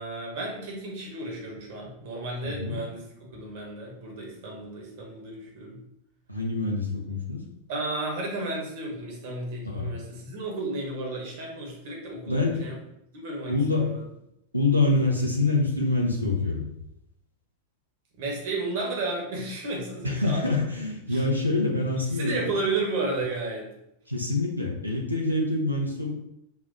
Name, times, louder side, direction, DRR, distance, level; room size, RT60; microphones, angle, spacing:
voice 1, 0.0-3.1 3.3-5.8 7.7-12.8 13.1-14.0 18.2-20.5 21.1-21.2 22.0-23.7, right 2 dB, 50° right, -1 dB, 1.2 m, -33 dB
voice 2, 2.4-2.8 6.3-7.4 9.6-10.0 12.3-12.6 13.5-14.2 14.5-16.7 20.0-22.4 24.1-26.1, left 2 dB, 90° right, -1 dB, 0.9 m, -26 dB
4.0 x 2.5 x 4.1 m, 0.81 s
figure-of-eight pair, 90°, 0 cm